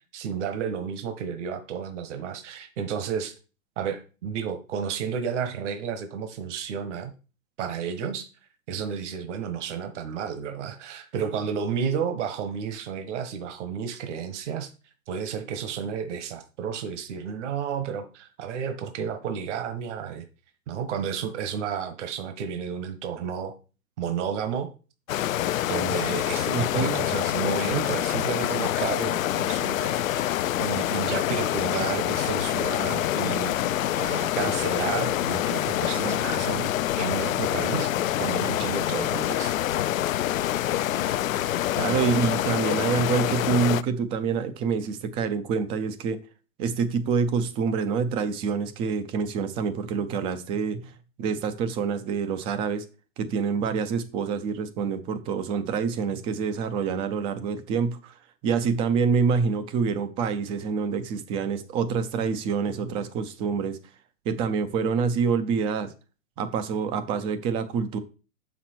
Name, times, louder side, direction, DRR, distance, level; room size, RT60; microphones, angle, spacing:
voice 1, 0.1-3.3 3.8-7.1 7.6-8.3 8.7-14.7 15.1-20.2 20.7-23.5 24.0-24.7 25.7-36.7 37.0-37.9 38.2-39.6, right 7 dB, 60° right, 8 dB, 1.4 m, -32 dB
sound 1, 25.1-43.8, left 13 dB, 75° left, 0.6 m, -26 dB
voice 2, 26.5-27.0 35.9-36.2 41.8-46.2 46.6-50.9 51.2-52.8 53.2-58.1 58.4-63.8 64.3-65.9 66.4-68.0, right 5 dB, 15° right, 11 dB, 0.4 m, -26 dB
sound 2, 31.3-42.4, left 7 dB, 90° left, 0.9 m, -41 dB
7.0 x 6.1 x 4.4 m, 0.34 s
hypercardioid pair, 130°, 41 cm